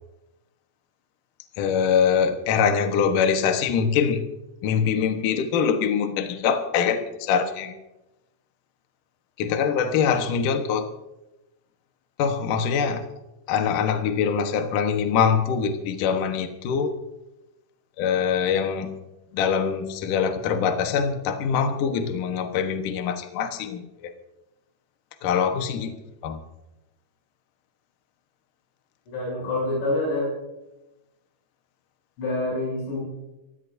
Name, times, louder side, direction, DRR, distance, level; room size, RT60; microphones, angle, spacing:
voice 1, 1.6-4.2 4.6-7.7 9.4-10.9 12.2-13.0 13.5-16.9 18.0-18.9 19.3-24.1 25.2-26.0 26.2-26.4, left 7 dB, 80° left, 6 dB, 1.8 m, -23 dB
voice 2, 29.1-30.3 32.2-33.0, left 2 dB, 65° left, -4 dB, 9.6 m, -26 dB
27.5 x 15.5 x 2.7 m, 0.96 s
omnidirectional pair, 5.8 m